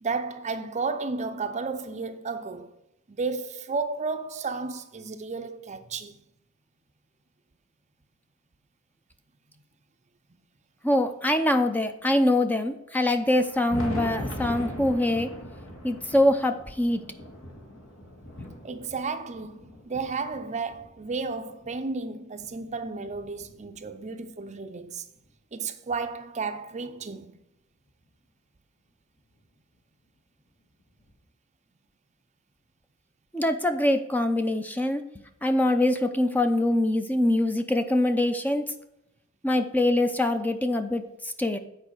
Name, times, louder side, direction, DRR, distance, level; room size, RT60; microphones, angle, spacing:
voice 1, 0.0-2.7 3.1-6.2 18.6-25.0 25.5-27.3, right 4 dB, 30° right, 0.6 m, -33 dB
voice 2, 10.8-15.3 15.8-17.0 33.3-35.0 35.4-38.6 39.4-41.6, left 1 dB, 10° left, 0.6 m, -24 dB
Thunder, 13.2-21.8 22.4-24.1 25.3-25.4 25.9-26.0 27.9-28.0 29.3-29.4 31.0-31.1, left 1 dB, 70° left, 1.9 m, -40 dB
8.5 x 4.7 x 6.6 m
head